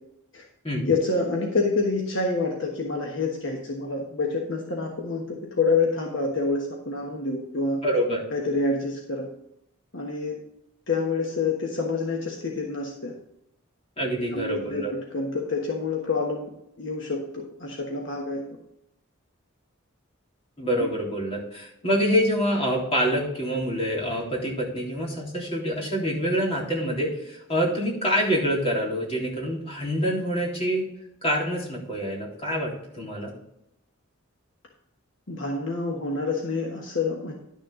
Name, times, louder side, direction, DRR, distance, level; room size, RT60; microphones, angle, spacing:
voice 1, 0.8-7.8 8.3-9.3 9.9-10.4 10.9-13.1 14.0-16.5 16.8-18.4 35.3-37.3, left 3 dB, 60° left, 0 dB, 1.3 m, -27 dB
voice 2, 7.8-8.2 14.0-14.9 20.6-30.8 31.2-33.3, equal, 30° left, -4 dB, 3.4 m, -26 dB
11.5 x 6.6 x 3.8 m, 0.80 s
head